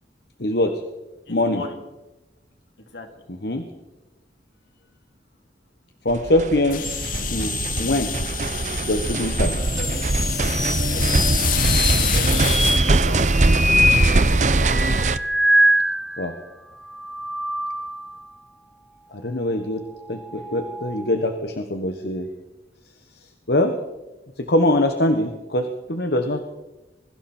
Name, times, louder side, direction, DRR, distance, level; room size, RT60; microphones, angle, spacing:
voice 1, 0.4-0.8 1.3-1.6 3.4-3.7 6.0-6.8 7.2-7.5 7.8-8.1 8.8-9.5 16.2-16.3 19.1-19.8 20.1-22.3 23.5-23.7 24.4-26.4, left 1 dB, 70° left, 6 dB, 1.5 m, -22 dB
voice 2, 1.3-1.8 2.9-3.1 9.8-10.4 10.7-11.1 12.1-12.4 12.7-13.4, left 2 dB, 85° left, 4 dB, 3.3 m, -38 dB
sound 1, 6.1-15.2, right 2 dB, 45° right, 0.7 m, -21 dB
sound 2, 6.7-12.8, left 12 dB, 50° left, 0.7 m, -28 dB
sound 3, 6.8-16.4 16.9-18.2 20.0-21.2, equal, ahead, 0.6 m, -25 dB
27.5 x 21.5 x 4.5 m, 1.1 s
head